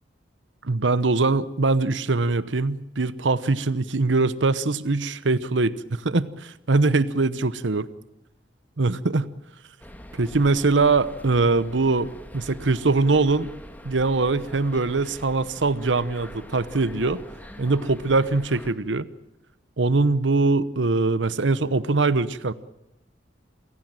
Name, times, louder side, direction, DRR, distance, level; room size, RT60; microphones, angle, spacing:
voice 1, 0.6-7.9 8.8-9.3 10.2-13.5 13.8-17.2 17.6-19.1 19.8-22.5, right 3 dB, 85° right, 16 dB, 0.9 m, -22 dB
sound 1, 9.8-18.7, equal, 10° left, 2.5 m, -43 dB
28.5 x 17.0 x 9.0 m, 0.86 s
head